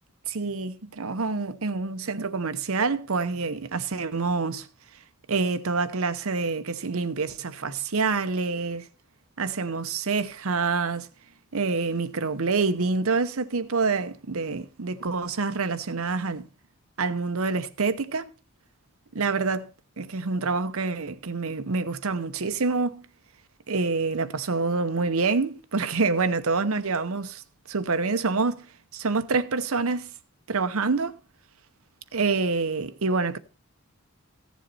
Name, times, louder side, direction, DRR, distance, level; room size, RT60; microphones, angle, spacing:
voice 1, 0.3-4.7 5.3-8.8 9.4-11.1 11.5-16.5 17.0-18.3 19.1-19.7 20.0-23.0 23.7-27.4 27.7-28.7 28.9-30.1 30.5-31.1 32.1-33.4, right 4 dB, 75° right, 0.8 m, -27 dB
15.0 x 7.3 x 4.1 m
head